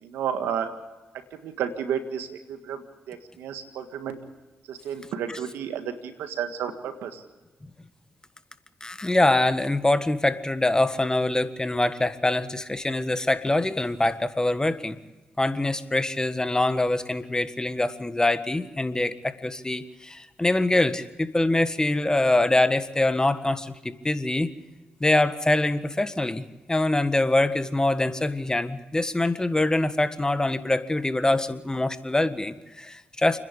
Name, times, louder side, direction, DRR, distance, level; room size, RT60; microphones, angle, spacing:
voice 1, 0.0-0.8 1.3-4.2 4.7-7.2, right 8 dB, 90° right, 8 dB, 1.8 m, -32 dB
voice 2, 8.8-15.0 15.4-24.5 25.0-33.4, left 2 dB, 20° left, 10 dB, 1.6 m, -24 dB
29.0 x 10.5 x 8.3 m, 1.2 s
supercardioid pair, 55°, 4 cm